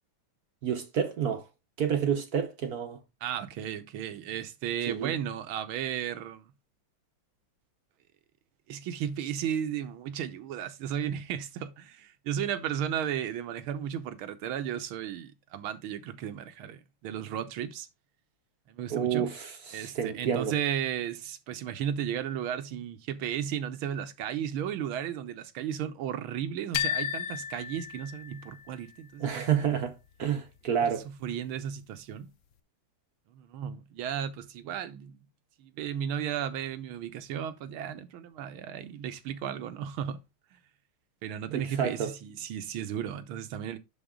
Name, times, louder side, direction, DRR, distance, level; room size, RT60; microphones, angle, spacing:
voice 1, 0.6-1.4 1.8-3.0 4.9-5.1 18.9-20.5 29.2-31.1 41.5-42.1, right 8 dB, 55° right, 1.2 m, -29 dB
voice 2, 3.2-6.5 8.7-17.9 18.7-19.3 19.7-29.7 30.8-30.9 31.2-32.3 33.3-35.2 35.6-40.2 41.2-43.8, right 9 dB, 75° right, 1.7 m, -34 dB
sound 1, 26.7-28.7, left 9 dB, 75° left, 0.7 m, -33 dB
11.0 x 4.1 x 3.7 m
omnidirectional pair, 2.4 m